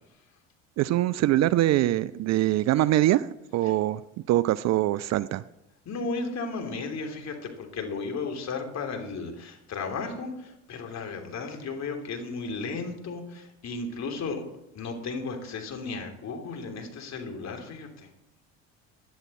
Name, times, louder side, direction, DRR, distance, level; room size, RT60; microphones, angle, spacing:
voice 1, 0.8-4.0 4.3-5.4, right 14 dB, 45° right, 18 dB, 0.5 m, -23 dB
voice 2, 5.8-14.4 14.7-18.1, left 4 dB, 45° left, 4 dB, 3.0 m, -34 dB
16.0 x 10.5 x 4.3 m, 0.87 s
hypercardioid pair, 65°, 39 cm